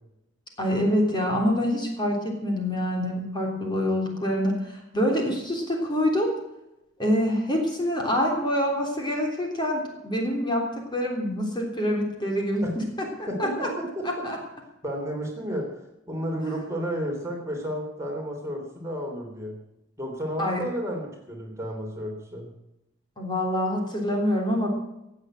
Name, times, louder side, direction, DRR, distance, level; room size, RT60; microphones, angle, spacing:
voice 1, 0.6-6.3 7.0-13.7 14.0-14.4 20.4-20.6 23.2-24.7, equal, 25° left, 0 dB, 3.4 m, -26 dB
voice 2, 13.3-14.2 14.8-15.7 16.1-19.5 20.0-22.5, equal, 15° right, 0 dB, 3.4 m, -32 dB
17.5 x 8.1 x 7.8 m, 0.89 s
head